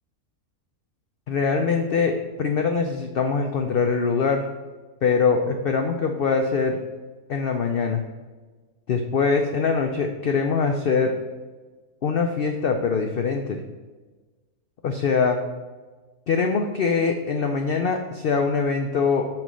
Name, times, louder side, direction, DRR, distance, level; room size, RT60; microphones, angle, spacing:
voice 1, 1.3-4.5 5.0-6.8 7.3-8.0 8.9-11.2 12.0-13.6 14.8-15.4 16.3-19.3, left 5 dB, 80° left, 4 dB, 0.5 m, -23 dB
7.4 x 3.1 x 5.2 m, 1.3 s
omnidirectional pair, 1.6 m